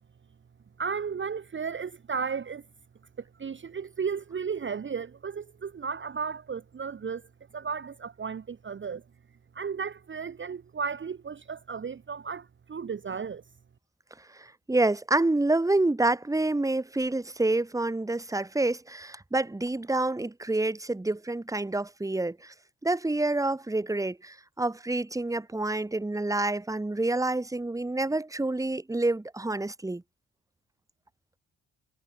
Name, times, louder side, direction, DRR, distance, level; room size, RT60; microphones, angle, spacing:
voice 1, 0.8-2.6 3.2-7.3 7.5-9.0 9.5-13.4, right 6 dB, 35° right, 1.1 m, -34 dB
voice 2, 14.2-22.5 22.8-30.0, right 2 dB, 10° right, 1.4 m, -28 dB
cardioid pair, 95°, 34 cm